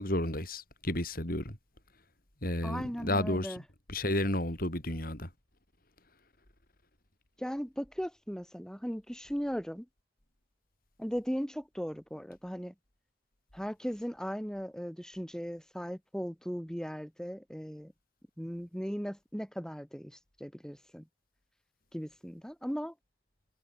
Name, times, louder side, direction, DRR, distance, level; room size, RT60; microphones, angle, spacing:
voice 1, 0.0-1.6 2.4-3.6 3.9-5.3, left 1 dB, 55° left, 6.7 m, -32 dB
voice 2, 2.6-3.6 7.4-9.9 11.0-12.7 13.5-17.9 18.4-20.1 20.4-21.0 21.9-22.9, equal, 5° left, 7.2 m, -37 dB
head